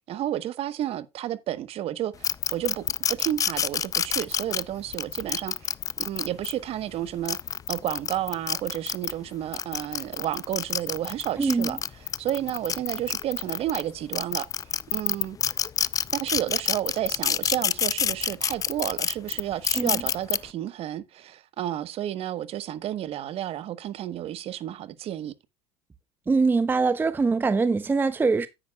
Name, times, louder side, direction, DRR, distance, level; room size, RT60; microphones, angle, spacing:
voice 1, 0.1-7.4 7.7-15.4 16.1-25.3, right 12 dB, 45° right, 1.0 m, -31 dB
sound 1, 2.2-6.5 7.1-9.1 9.5-13.8 14.1-20.4, left 8 dB, 25° left, 0.4 m, -27 dB
voice 2, 11.4-11.8 19.7-20.0 26.3-28.5, right 4 dB, 15° right, 0.7 m, -23 dB
9.8 x 9.4 x 2.3 m
supercardioid pair, 95°, 14 cm